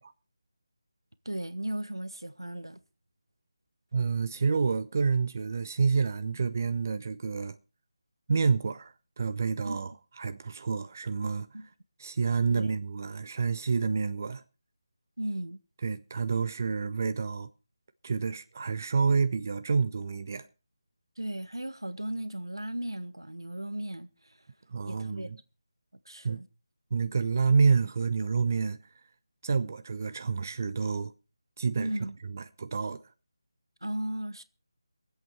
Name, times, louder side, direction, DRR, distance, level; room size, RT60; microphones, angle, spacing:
voice 1, 1.2-2.8 9.6-9.8 11.5-11.7 12.5-12.7 15.2-15.6 21.2-24.4 24.8-25.3 26.0-26.5 31.8-32.2 33.8-34.4, right 1 dB, 85° right, 1.1 m, -36 dB
voice 2, 3.9-7.6 8.3-9.9 10.2-11.5 12.0-14.4 15.8-17.5 18.0-20.5 24.7-25.4 26.2-26.4 26.9-28.8 29.4-31.1 31.6-31.9 32.3-33.1, right 5 dB, 40° right, 0.7 m, -28 dB
22.5 x 8.2 x 4.5 m
figure-of-eight pair, 160°, 2 cm